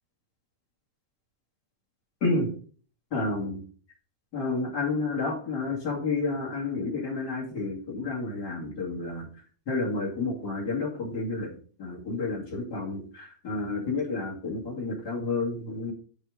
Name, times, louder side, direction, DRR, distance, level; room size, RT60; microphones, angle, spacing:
voice 1, 3.1-3.6 4.3-9.3 9.7-11.5 11.8-15.9, left 3 dB, 35° left, -4 dB, 1.8 m, -30 dB
8.9 x 4.6 x 5.1 m, 0.43 s
omnidirectional pair, 5.5 m